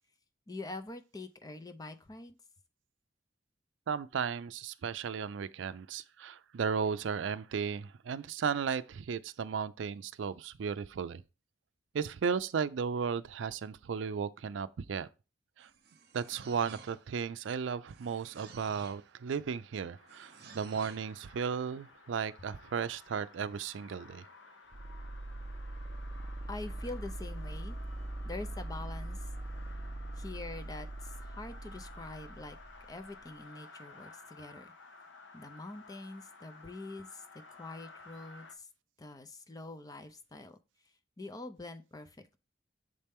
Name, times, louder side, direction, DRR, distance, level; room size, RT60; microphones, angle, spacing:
voice 1, 0.5-2.4 26.5-27.8 28.2-29.3 30.2-32.6 32.9-34.7 35.3-37.2 37.6-38.7 39.0-40.6 41.2-42.4, left 2 dB, 20° left, 0.5 m, -45 dB
voice 2, 3.9-11.2 11.9-15.1 15.6-15.7 16.1-24.2, right 6 dB, 90° right, 0.4 m, -35 dB
sound 1, 15.6-17.2 17.9-19.1 20.1-21.1, right 5 dB, 60° right, 0.8 m, -52 dB
sound 2, 20.0-38.5, left 3 dB, 80° left, 0.8 m, -55 dB
sound 3, 24.7-33.4, right 1 dB, 25° right, 0.7 m, -42 dB
6.5 x 4.3 x 3.5 m
head